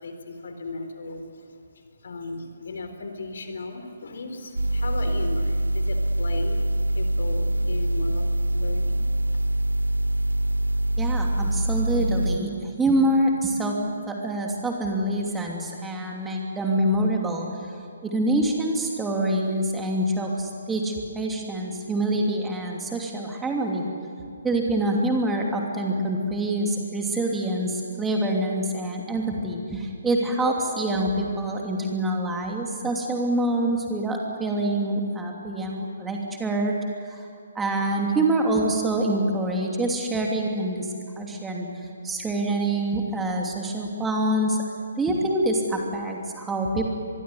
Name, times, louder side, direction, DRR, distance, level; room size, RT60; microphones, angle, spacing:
voice 1, 0.0-9.0, left 3 dB, 55° left, 7 dB, 3.8 m, -36 dB
sound 1, 4.6-12.4, right 1 dB, 75° right, 0.6 m, -24 dB
voice 2, 11.0-13.8 14.1-17.7 18.0-23.8 24.4-36.7 37.1-37.3 37.5-41.7 42.0-44.6 45.0-46.9, right 1 dB, 10° right, 0 dB, 2.8 m, -26 dB
25.0 x 22.5 x 9.7 m, 2.4 s
figure-of-eight pair, 135°, 0 cm